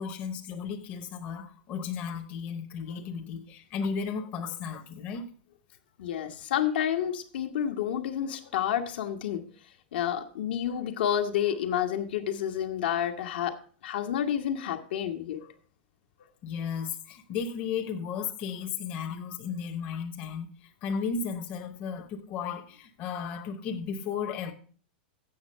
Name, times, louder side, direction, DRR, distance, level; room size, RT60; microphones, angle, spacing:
voice 1, 0.0-5.3 16.4-24.5, left 6 dB, 30° left, 0.8 m, -34 dB
voice 2, 6.0-9.5 9.9-15.5, left 10 dB, 70° left, 1.3 m, -30 dB
7.9 x 6.2 x 6.5 m
supercardioid pair, 165°, 5 cm